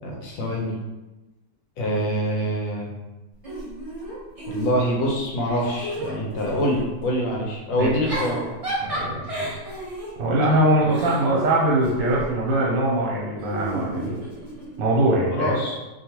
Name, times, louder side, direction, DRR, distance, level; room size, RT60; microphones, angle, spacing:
voice 1, 0.0-0.7 1.8-2.9 4.5-8.4 15.3-15.8, equal, 90° left, -2 dB, 1.4 m, -25 dB
Giggle / Chuckle chortle, 3.4-5.1 5.5-6.9 7.8-12.3 13.4-14.8, right 1 dB, 30° right, 0.7 m, -33 dB
voice 2, 8.8-9.5 10.2-14.2 14.8-15.5, right 1 dB, 80° right, -5 dB, 1.4 m, -22 dB
3.2 x 2.3 x 2.9 m, 1.1 s
omnidirectional pair, 2.0 m